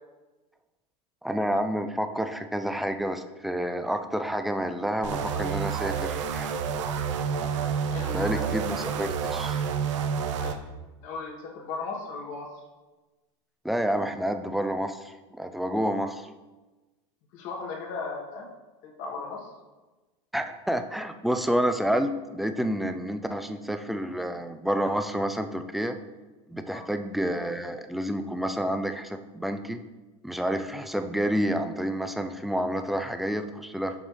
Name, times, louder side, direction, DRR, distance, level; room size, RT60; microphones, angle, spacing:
voice 1, 1.2-6.5 8.1-9.6 13.6-16.3 20.3-26.0 26.5-29.8 30.2-33.9, equal, ahead, 8 dB, 0.3 m, -29 dB
sound 1, 5.0-10.6, right 6 dB, 80° right, 0.6 m, -29 dB
voice 2, 7.9-8.5 10.4-10.6 11.0-12.5 15.9-16.0 17.3-18.5 18.8-19.5 26.7-26.9, left 4 dB, 55° left, 0 dB, 1.5 m, -37 dB
7.1 x 5.2 x 3.3 m, 1.2 s
supercardioid pair, 120°, 15 cm